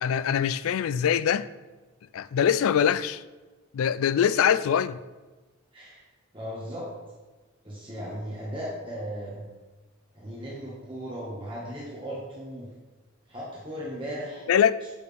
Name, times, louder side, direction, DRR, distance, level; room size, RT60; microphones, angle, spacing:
voice 1, 0.0-1.5 2.1-3.2 3.7-5.0 14.5-14.8, left 8 dB, 85° left, 0.3 m, -23 dB
voice 2, 6.3-6.9 7.6-9.4 10.1-12.7 13.3-14.4, equal, 25° right, 1.6 m, -36 dB
8.7 x 6.1 x 3.5 m
head